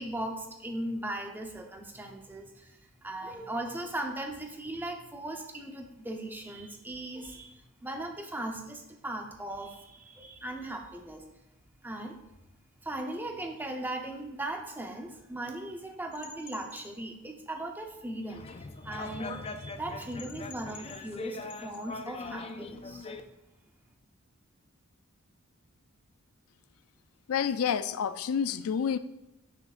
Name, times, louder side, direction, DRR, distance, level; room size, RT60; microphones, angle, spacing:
voice 1, 0.0-2.7 3.0-11.2 11.8-12.2 12.8-23.1, right 1 dB, 10° right, 3 dB, 0.7 m, -38 dB
sound 1, 16.1-16.9 20.0-21.2 21.5-21.9, left 6 dB, 60° left, 0.8 m, -50 dB
sound 2, 18.3-23.2, left 2 dB, 30° left, 0.4 m, -41 dB
voice 2, 27.3-29.0, left 7 dB, 90° left, 13 dB, 0.4 m, -29 dB
9.1 x 6.1 x 2.5 m, 0.92 s
head